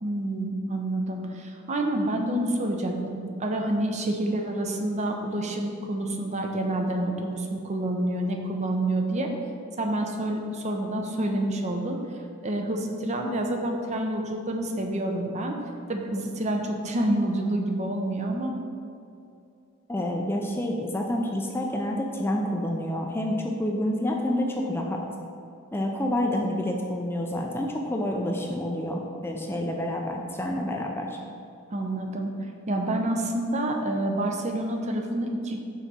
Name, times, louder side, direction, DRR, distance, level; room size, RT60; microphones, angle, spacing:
voice 1, 0.0-9.3 9.8-12.0 12.4-15.6 15.9-18.5 31.7-32.3 32.7-35.6, right 1 dB, 35° right, 2 dB, 0.6 m, -28 dB
voice 2, 19.9-25.0 25.7-31.2, left 1 dB, 10° left, 1 dB, 0.4 m, -28 dB
5.7 x 4.1 x 6.1 m, 2.5 s
head